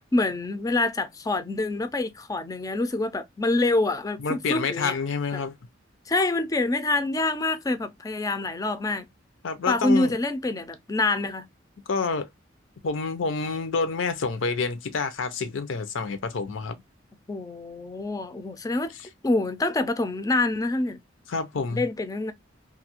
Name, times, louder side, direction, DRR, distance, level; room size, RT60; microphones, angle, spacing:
voice 1, 0.0-5.0 5.3-5.4 6.1-9.1 9.7-11.5 17.3-18.9 19.2-21.0 21.7-22.3, left 2 dB, 20° left, 0.3 m, -26 dB
voice 2, 4.2-5.5 9.4-10.1 11.9-12.3 12.8-16.8 21.3-21.8, left 4 dB, 90° left, 0.6 m, -28 dB
2.7 x 2.4 x 2.8 m
head